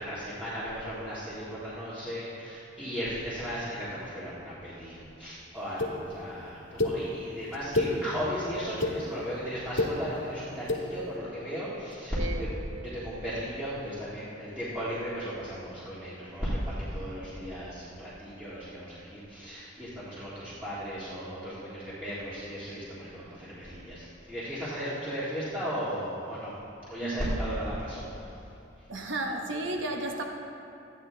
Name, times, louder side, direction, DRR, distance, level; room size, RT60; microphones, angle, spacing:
voice 1, 0.0-12.5 12.8-26.5 26.9-28.1, equal, 5° right, -12 dB, 1.8 m, -36 dB
sound 1, 5.8-5.9 6.8-6.9 7.5-7.9 8.6-8.9 9.6-9.9 10.6-10.8, left 2 dB, 80° left, 1.3 m, -27 dB
voice 2, 12.1-12.5 27.0-27.4 28.9-30.2, right 2 dB, 85° right, 2 dB, 1.0 m, -33 dB
13.5 x 9.3 x 3.4 m, 2.6 s
head